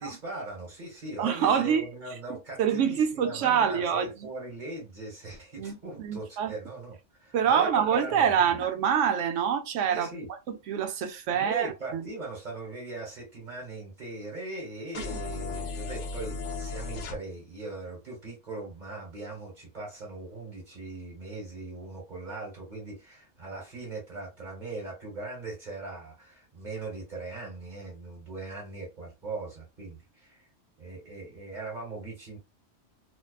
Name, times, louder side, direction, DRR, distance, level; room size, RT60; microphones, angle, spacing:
voice 1, 0.0-8.6 9.9-10.3 11.3-30.5 30.8-32.4, right 3 dB, 40° right, 1.3 m, -40 dB
voice 2, 1.2-1.9 2.3-4.1 5.6-6.5 7.3-10.1 10.5-12.0, right 8 dB, 85° right, 0.9 m, -26 dB
sound 1, 14.9-17.2, left 3 dB, 80° left, 0.9 m, -35 dB
2.6 x 2.2 x 2.3 m
omnidirectional pair, 1.2 m